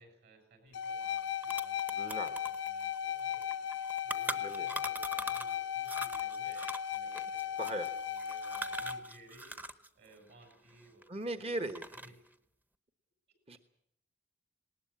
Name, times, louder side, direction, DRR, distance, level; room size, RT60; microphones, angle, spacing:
voice 1, 0.0-3.6 4.0-12.2, right 2 dB, 55° right, 5 dB, 7.3 m, -59 dB
sound 1, 0.7-9.0, left 9 dB, 65° left, 0.8 m, -36 dB
sound 2, 0.8-0.9 1.2-5.6 5.8-9.9 10.1-11.3 11.6-12.3, right 1 dB, 10° right, 0.9 m, -42 dB
voice 2, 2.0-2.3 4.4-4.7 7.6-7.9 11.1-11.9 13.5-13.6, right 1 dB, 30° right, 9 dB, 1.1 m, -37 dB
20.0 x 19.0 x 8.7 m, 0.75 s
head